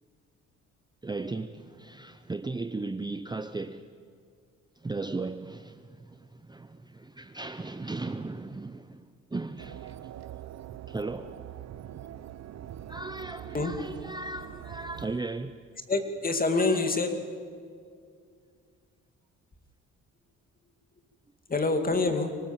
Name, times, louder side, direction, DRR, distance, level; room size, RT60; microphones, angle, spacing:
voice 1, 1.0-3.9 4.8-9.9 10.9-11.3 12.9-15.5 16.6-16.9, right 3 dB, 15° right, 0.7 m, -37 dB
sound 1, 9.6-15.2, right 11 dB, 60° right, 0.8 m, -43 dB
voice 2, 15.9-17.2 21.5-22.3, left 3 dB, 30° left, 2.5 m, -26 dB
24.5 x 19.0 x 7.2 m
cardioid pair, 90°, 30 cm